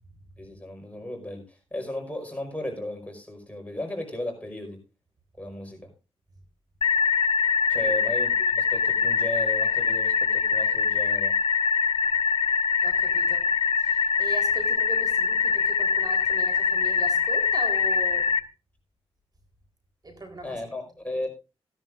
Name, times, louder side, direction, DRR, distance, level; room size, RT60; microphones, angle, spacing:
voice 1, 0.4-4.8 5.4-5.9 7.7-11.3 20.4-21.3, left 1 dB, 15° left, 5.2 m, -35 dB
sound 1, 6.8-18.4, left 6 dB, 60° left, 1.1 m, -23 dB
voice 2, 12.8-13.5 13.8-18.3 20.0-20.6, right 2 dB, 40° right, 4.1 m, -40 dB
17.5 x 11.0 x 2.6 m
cardioid pair, 70°, 11 cm